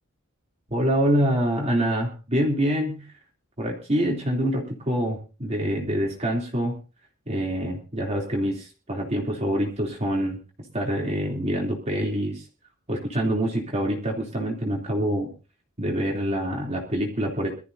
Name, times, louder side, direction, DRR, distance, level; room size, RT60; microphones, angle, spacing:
voice 1, 0.7-3.0 3.6-6.8 7.3-10.4 10.7-12.5 12.9-15.3 15.8-17.5, equal, 30° right, -1 dB, 3.1 m, -25 dB
23.5 x 13.5 x 2.7 m, 0.33 s
head